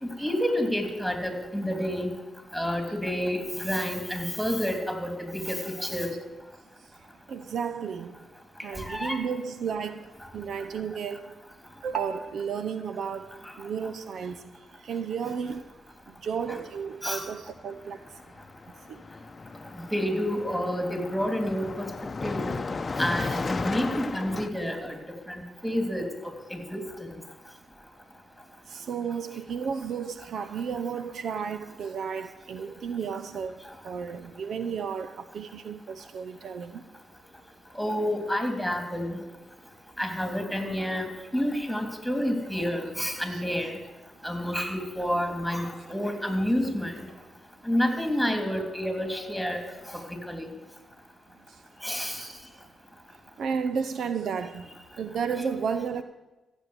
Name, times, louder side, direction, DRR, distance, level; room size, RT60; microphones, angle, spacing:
voice 1, 0.0-2.1 2.5-6.1 8.8-9.2 16.5-16.6 17.0-17.3 19.9-21.9 22.2-22.5 23.0-24.9 25.3-26.0 26.5-26.8 37.8-39.2 40.0-43.7 44.2-46.9 47.7-49.6 50.3-50.5 51.8-52.2, equal, ahead, 3.2 m, -29 dB
voice 2, 7.3-8.2 8.6-10.1 10.3-11.4 11.8-14.5 14.8-15.7 16.2-18.0 18.9-19.0 28.7-36.8 43.3-43.4 52.2-52.3 53.4-54.7 55.0-56.0, right 6 dB, 70° right, 0.6 m, -33 dB
Car passing by, 17.0-17.2 17.5-24.5, left 4 dB, 40° left, 0.8 m, -35 dB
15.0 x 7.3 x 8.3 m
supercardioid pair, 60°, 0 cm